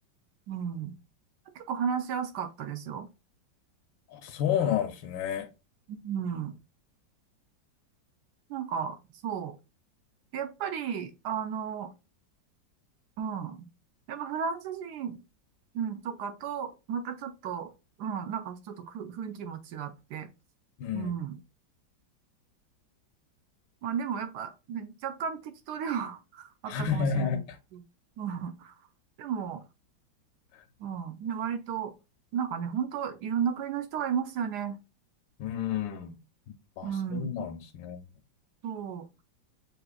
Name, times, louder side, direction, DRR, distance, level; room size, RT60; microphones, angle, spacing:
voice 1, 0.5-0.9 1.6-3.1 5.9-6.5 8.5-9.0 9.2-9.6 10.3-11.9 13.2-13.7 14.1-15.2 15.7-17.7 18.0-20.3 20.9-21.4 23.8-27.4 27.7-27.8 28.2-28.7 29.2-29.6 30.8-31.9 32.3-34.8 36.8-37.5 38.6-39.1, right 7 dB, 70° right, 1.0 m, -34 dB
voice 2, 4.1-5.5 20.8-21.1 26.7-27.6 35.4-36.2 36.8-38.0, left 7 dB, 80° left, 1.2 m, -30 dB
6.7 x 2.8 x 2.2 m
omnidirectional pair, 2.1 m